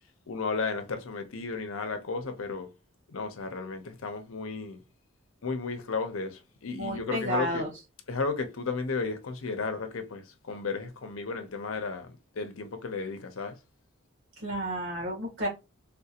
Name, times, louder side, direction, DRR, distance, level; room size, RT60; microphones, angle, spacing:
voice 1, 0.3-2.7 3.1-4.8 5.4-7.6 8.1-13.5, left 4 dB, 85° left, 0.7 m, -34 dB
voice 2, 6.7-7.7 14.4-15.5, right 1 dB, 75° right, 1.7 m, -31 dB
3.6 x 2.4 x 2.8 m
head